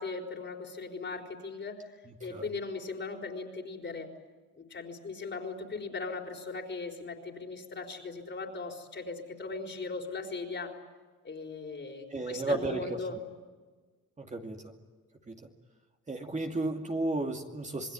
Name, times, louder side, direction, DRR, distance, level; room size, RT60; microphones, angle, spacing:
voice 1, 0.0-1.8 2.2-4.1 4.6-10.8 11.2-13.2, left 3 dB, 40° left, 3 dB, 4.3 m, -38 dB
voice 2, 2.1-2.5 12.1-13.0 14.2-14.6 15.3-15.4 16.1-17.9, right 2 dB, 25° right, 2 dB, 2.5 m, -33 dB
27.5 x 20.0 x 9.8 m, 1.3 s
cardioid pair, 90°, 30 cm